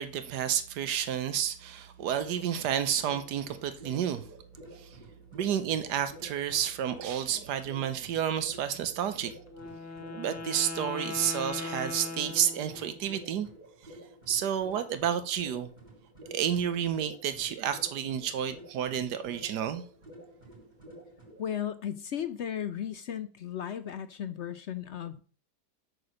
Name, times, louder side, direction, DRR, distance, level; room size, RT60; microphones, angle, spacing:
voice 1, 0.0-4.3 4.8-4.9 5.3-9.3 10.1-13.5 14.3-15.7 16.3-19.8, right 9 dB, 75° right, 1.5 m, -30 dB
sound 1, 2.0-21.4, right 1 dB, 25° right, 3.4 m, -51 dB
Wind instrument woodwind instrument, 9.5-13.1, left 3 dB, 10° left, 1.1 m, -39 dB
voice 2, 21.4-25.2, left 9 dB, 65° left, 0.7 m, -35 dB
8.4 x 4.9 x 6.4 m
omnidirectional pair, 1.8 m